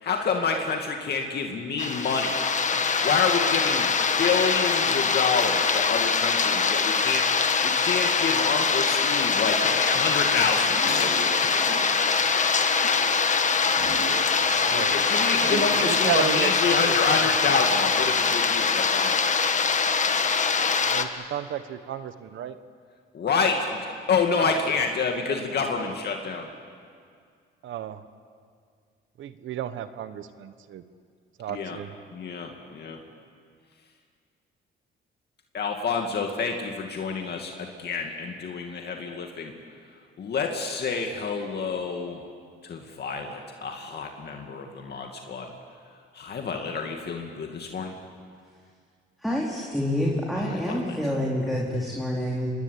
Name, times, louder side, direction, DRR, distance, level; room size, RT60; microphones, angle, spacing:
voice 1, 0.0-2.4 3.0-3.9 4.2-7.3 7.6-13.3 14.7-19.3 23.1-23.8 24.1-26.5 31.5-31.8 32.1-33.0 35.5-39.5 40.2-42.2 42.6-45.5 46.1-47.9 50.4-51.0, left 5 dB, 55° left, 2 dB, 2.4 m, -28 dB
sound 1, 1.8-21.0, left 5 dB, 40° left, 1.6 m, -23 dB
sound 2, 10.7-12.9 13.8-14.7 15.0-16.0, right 4 dB, 55° right, 3.8 m, -36 dB
voice 2, 14.7-15.0 15.6-17.0 20.9-22.6 27.6-28.0 29.2-30.8 31.4-31.9, right 9 dB, 75° right, 11 dB, 1.3 m, -32 dB
voice 3, 49.2-52.5, left 1 dB, ahead, -4 dB, 4.3 m, -27 dB
26.5 x 21.0 x 8.5 m, 2.1 s
cardioid pair, 90°, 20 cm